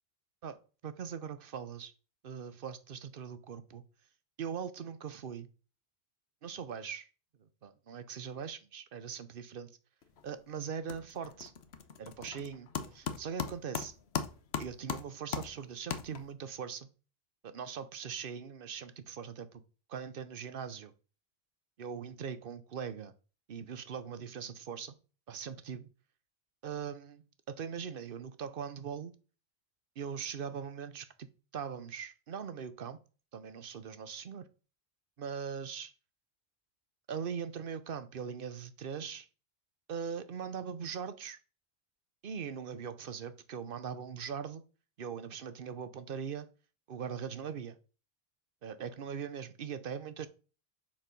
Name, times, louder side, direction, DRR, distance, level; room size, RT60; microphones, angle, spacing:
voice 1, 0.8-1.9 2.2-3.8 4.4-5.5 6.4-7.1 7.4-9.7 10.2-11.5 12.0-13.9 14.6-16.9 17.4-19.6 19.9-20.9 21.8-23.1 23.5-24.9 25.3-25.9 26.6-29.1 30.0-31.3 31.5-33.0 33.3-34.5 35.2-35.9 37.1-39.3 39.9-41.4 42.2-44.6 45.0-46.5 46.9-47.8 48.6-50.3, right 7 dB, 60° right, 0.9 m, -41 dB
sound 1, 10.0-10.4 10.7-16.5, left 7 dB, 85° left, 1.1 m, -39 dB
7.4 x 4.7 x 5.3 m
omnidirectional pair, 1.0 m